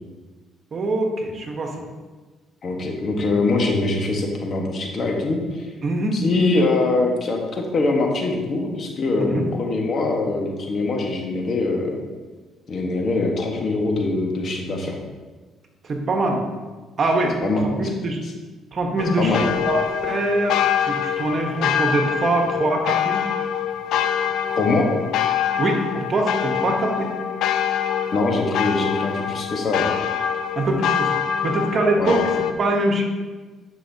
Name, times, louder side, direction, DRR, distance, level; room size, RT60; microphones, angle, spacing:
voice 1, 0.7-1.8 5.8-6.2 9.2-9.5 15.8-16.4 17.0-17.4 17.8-18.2 18.7-23.2 25.6-27.1 30.5-31.1 31.4-32.3 32.6-33.0, right 2 dB, 50° right, 3 dB, 1.2 m, -23 dB
voice 2, 2.6-5.7 6.1-12.0 12.7-15.0 17.4-17.7 19.2-19.5 24.5-24.9 28.1-29.9 32.0-32.2, left 3 dB, 50° left, 1 dB, 1.4 m, -23 dB
sound 1, 19.0-32.5, left 8 dB, 75° left, 0.5 m, -25 dB
10.0 x 5.5 x 2.8 m, 1.3 s
supercardioid pair, 65°, 0 cm